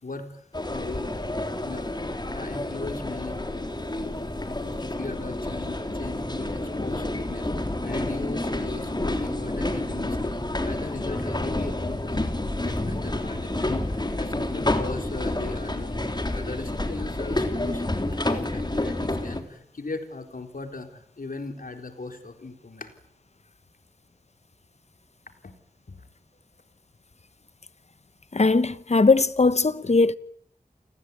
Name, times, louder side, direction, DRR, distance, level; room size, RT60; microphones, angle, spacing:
voice 1, 0.0-1.2 1.6-3.4 4.5-12.3 12.6-17.9 18.1-22.9 25.4-25.5 25.9-26.0, left 3 dB, 70° left, 4.0 m, -38 dB
sound 1, 0.5-19.4, left 1 dB, 30° left, 3.5 m, -29 dB
voice 2, 28.3-30.2, left 3 dB, 50° left, 1.1 m, -19 dB
29.0 x 19.5 x 9.6 m
wide cardioid pair, 65°, 15 cm